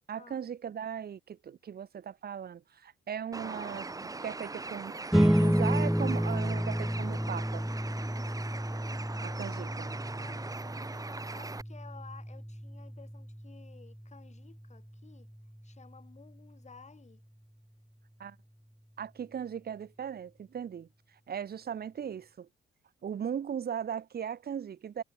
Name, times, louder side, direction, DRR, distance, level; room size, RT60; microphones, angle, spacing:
voice 1, 0.1-3.9 4.2-7.7 9.2-9.9 18.2-18.4 19.0-22.5 23.0-25.0, right 8 dB, 50° right, 2.0 m, -38 dB
Bird, 3.3-11.6, right 3 dB, 15° right, 1.1 m, -41 dB
sound 1, 5.1-15.9, equal, ahead, 0.6 m, -31 dB
voice 2, 10.2-15.3 15.6-17.2, left 5 dB, 35° left, 5.7 m, -54 dB
cardioid pair, 90°, 20 cm